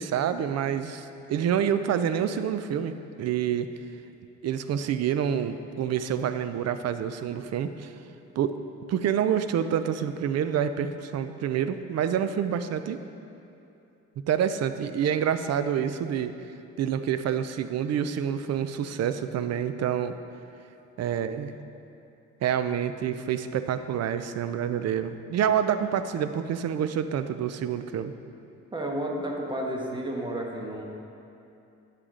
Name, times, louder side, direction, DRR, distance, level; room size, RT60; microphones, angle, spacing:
voice 1, 0.0-3.7 4.4-7.9 8.4-8.6 8.9-13.0 14.2-16.3 16.8-20.2 21.0-21.5 22.4-28.1, right 8 dB, 60° right, 10 dB, 0.5 m, -27 dB
voice 2, 28.7-30.9, right 1 dB, 15° right, 0 dB, 1.2 m, -31 dB
10.0 x 6.6 x 3.7 m, 2.8 s
cardioid pair, 90°, 30 cm